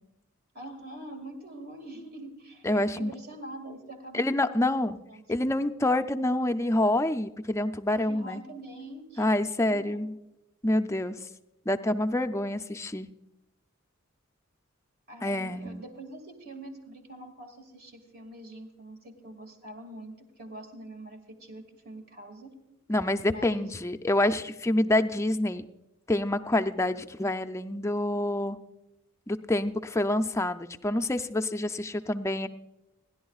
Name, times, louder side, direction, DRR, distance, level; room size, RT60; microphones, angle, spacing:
voice 1, 0.5-5.5 7.9-10.0 15.1-22.5 23.2-23.7, right 1 dB, 45° right, 5 dB, 2.1 m, -44 dB
voice 2, 2.6-3.1 4.1-5.0 5.3-8.4 9.2-10.1 10.6-11.2 11.7-13.1 15.2-15.8 22.9-25.7 26.1-28.6 29.3-32.5, left 1 dB, 15° left, 9 dB, 0.4 m, -27 dB
30.0 x 11.0 x 2.4 m, 0.95 s
head